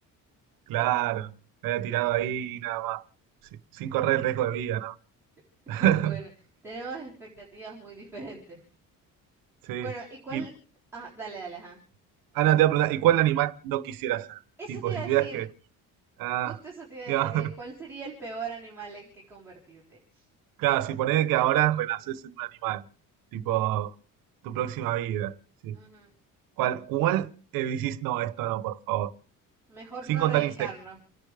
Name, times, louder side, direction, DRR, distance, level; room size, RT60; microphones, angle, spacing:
voice 1, 0.7-1.3 1.6-3.0 3.7-5.0 5.7-6.2 9.6-9.9 10.3-10.5 12.3-14.4 14.7-15.5 16.2-16.6 17.1-17.5 20.6-22.8 23.3-23.9 24.4-25.3 25.6-25.8 26.6-29.1 30.1-30.7, right 13 dB, 90° right, 1.1 m, -26 dB
voice 2, 5.7-6.3 6.6-8.6 9.8-10.5 10.9-11.8 14.6-15.4 16.4-20.3 23.3-23.6 25.7-26.1 29.7-31.0, right 4 dB, 5° right, 3.9 m, -40 dB
29.0 x 10.5 x 3.4 m
cardioid pair, 175°, 33 cm